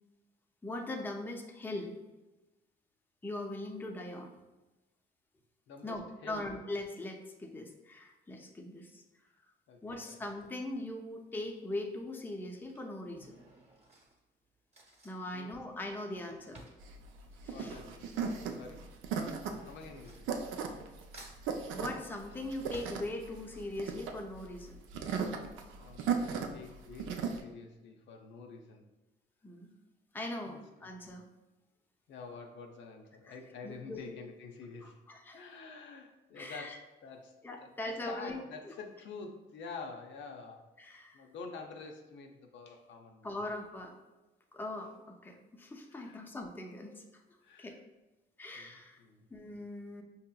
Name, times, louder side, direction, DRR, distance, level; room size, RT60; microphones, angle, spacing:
voice 1, 0.6-2.0 3.2-4.3 5.8-9.0 9.8-13.4 15.0-16.7 17.4-17.7 21.7-24.8 29.4-29.7 30.1-31.2 33.3-33.4 33.6-34.1 34.8-35.5 36.4-36.8 37.4-38.4 38.6-38.7 40.8-41.2 43.2-44.0 44.5-47.0 47.6-47.8 48.4-49.0 49.3-50.0, left 1 dB, 10° left, 2 dB, 0.5 m, -41 dB
voice 2, 5.7-6.5 9.7-10.2 15.3-15.6 17.5-18.9 19.6-20.9 25.7-28.9 30.4-30.9 32.1-35.0 35.3-40.7 41.1-43.4 45.9-46.3 47.4-47.8 48.5-49.3, left 4 dB, 70° left, 3 dB, 0.5 m, -48 dB
Drawer open or close / Cutlery silverware, 11.1-11.5 12.4-18.2 18.5-20.9 21.1-23.7 24.1-24.2 24.4-24.5, right 2 dB, 35° right, 0.9 m, -57 dB
sound 1, 16.8-27.4, right 6 dB, 85° right, 0.4 m, -37 dB
4.7 x 2.8 x 2.2 m, 1.1 s
cardioid pair, 90°, 20 cm